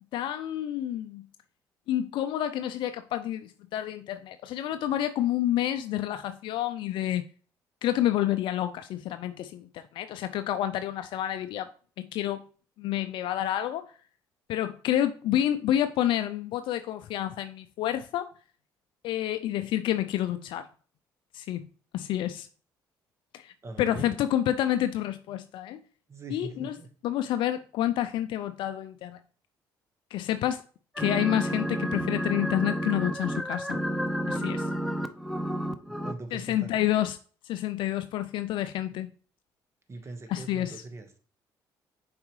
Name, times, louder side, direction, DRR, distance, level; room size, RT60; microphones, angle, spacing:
voice 1, 0.1-1.3 1.9-7.3 7.8-11.7 12.0-12.4 12.8-13.9 14.5-18.3 19.0-20.7 21.3-21.7 21.9-22.5 23.3-23.5 23.8-25.8 26.3-26.8 27.0-29.2 30.1-30.6 31.0-33.8 34.3-34.7 36.3-37.2 37.4-39.1 40.3-40.8, left 12 dB, 70° left, 0.4 m, -29 dB
voice 2, 23.6-24.2 26.1-26.9 35.9-36.9 38.9-39.0 39.9-41.2, right 3 dB, 35° right, 1.4 m, -41 dB
sound 1, 31.0-36.1, equal, ahead, 0.6 m, -30 dB
7.1 x 4.8 x 3.1 m
supercardioid pair, 70°, 9 cm